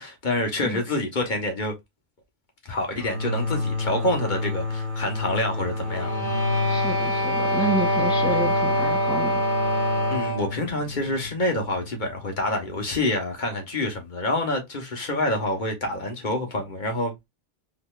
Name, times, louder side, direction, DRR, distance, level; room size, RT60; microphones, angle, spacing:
voice 1, 0.0-1.7 2.6-6.1 10.1-17.1, left 1 dB, 50° left, 1.2 m, -27 dB
sound 1, 2.9-12.4, left 3 dB, 45° right, 1.1 m, -29 dB
sound 2, 5.9-10.6, right 1 dB, 25° left, 1.3 m, -25 dB
voice 2, 6.6-9.4, right 1 dB, ahead, 0.6 m, -30 dB
4.0 x 3.2 x 2.3 m
omnidirectional pair, 1.1 m